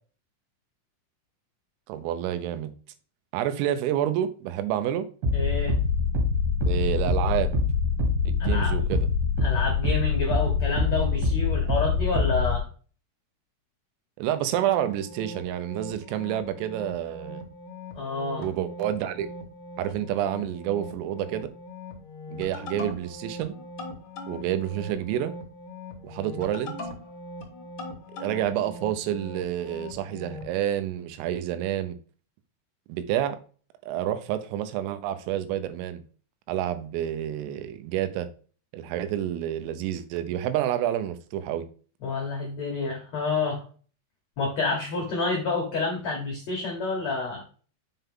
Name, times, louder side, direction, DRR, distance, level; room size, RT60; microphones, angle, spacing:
voice 1, 1.9-2.7 3.3-5.1 6.7-7.5 8.3-9.1 14.2-17.4 18.4-19.3 19.8-21.5 22.3-23.6 24.3-25.3 26.0-26.8 28.2-32.0 32.9-33.4 33.8-36.0 36.5-38.3 38.7-41.7, right 11 dB, 85° right, 3.5 m, -29 dB
sound 1, 5.2-12.6, left 4 dB, 60° right, 3.7 m, -24 dB
voice 2, 5.3-5.8 8.4-8.9 9.4-12.6 17.9-18.5 42.0-43.6 44.4-47.4, left 4 dB, 85° left, 1.5 m, -29 dB
sound 2, 14.4-30.5, left 1 dB, 60° left, 1.4 m, -41 dB
7.0 x 5.6 x 3.7 m
omnidirectional pair, 5.8 m